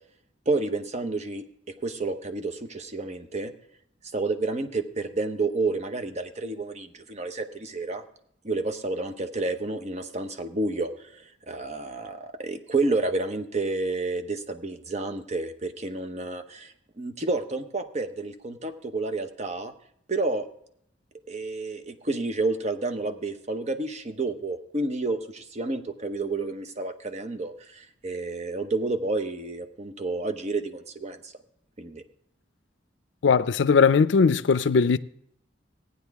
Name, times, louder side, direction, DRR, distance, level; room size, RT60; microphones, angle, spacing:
voice 1, 0.5-1.4 1.8-3.5 4.1-8.0 8.4-19.7 20.1-20.5 21.3-31.3 31.8-32.0, right 3 dB, 40° right, 0.8 m, -30 dB
voice 2, 33.2-35.0, left 5 dB, 80° left, 0.5 m, -19 dB
15.5 x 9.5 x 3.5 m
head